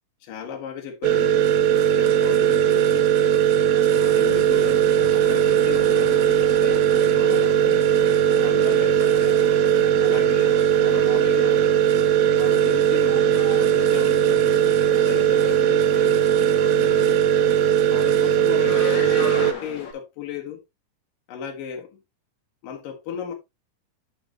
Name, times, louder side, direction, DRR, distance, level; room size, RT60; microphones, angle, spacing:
voice 1, 0.2-1.5 1.7-3.1 3.7-7.7 8.3-9.4 10.0-11.7 12.3-17.2 17.9-20.6 21.3-22.0 22.6-23.3, left 7 dB, 85° left, 3.1 m, -35 dB
sound 1, 1.0-19.5, right 10 dB, 75° right, 1.8 m, -19 dB
sound 2, 4.1-19.9, left 5 dB, 60° left, 3.4 m, -39 dB
9.9 x 6.5 x 2.8 m
omnidirectional pair, 3.8 m